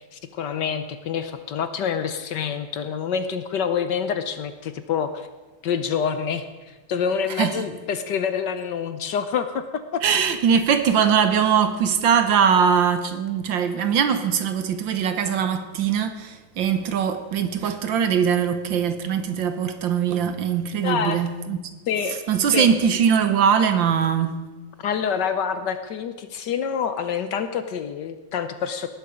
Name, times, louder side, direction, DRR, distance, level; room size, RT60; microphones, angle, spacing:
voice 1, 0.0-5.3 5.6-10.0 20.8-21.2 21.9-22.2 22.5-22.7 24.8-28.9, left 7 dB, 65° left, 1.2 m, -27 dB
voice 2, 10.0-21.7 22.3-24.4, right 7 dB, 65° right, 1.6 m, -21 dB
19.0 x 10.5 x 5.1 m
omnidirectional pair, 2.3 m